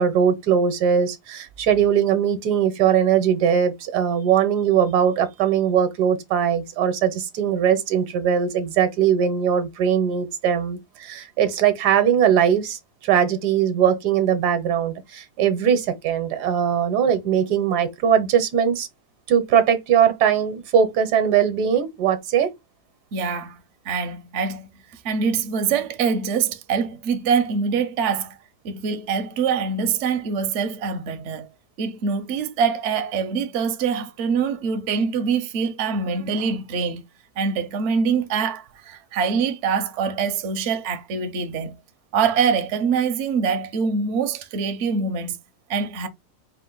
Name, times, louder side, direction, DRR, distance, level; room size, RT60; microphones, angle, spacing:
voice 1, 0.0-18.9 19.3-22.5, right 8 dB, 80° right, 1.3 m, -20 dB
voice 2, 23.1-24.7 25.0-28.4 28.6-31.5 31.8-37.0 37.4-41.7 42.1-45.4 45.7-46.1, right 6 dB, 60° right, 0.8 m, -24 dB
4.4 x 2.5 x 3.8 m
omnidirectional pair, 1.7 m